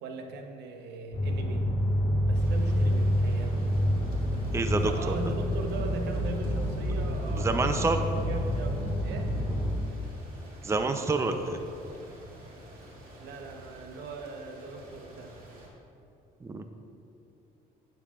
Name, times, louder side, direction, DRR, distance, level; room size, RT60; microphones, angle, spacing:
voice 1, 0.0-1.7 2.3-3.5 4.8-9.3 13.2-15.3, right 3 dB, 80° right, 4 dB, 1.0 m, -39 dB
sound 1, 1.1-9.7, equal, 45° left, 2.2 m, -28 dB
sound 2, 2.3-15.7, right 1 dB, 60° right, 2.2 m, -49 dB
voice 2, 4.5-5.1 7.4-8.0 10.6-11.6 16.4-16.7, right 3 dB, 15° right, 6 dB, 0.5 m, -28 dB
11.5 x 9.4 x 2.4 m, 2.7 s
cardioid pair, 110°, 17 cm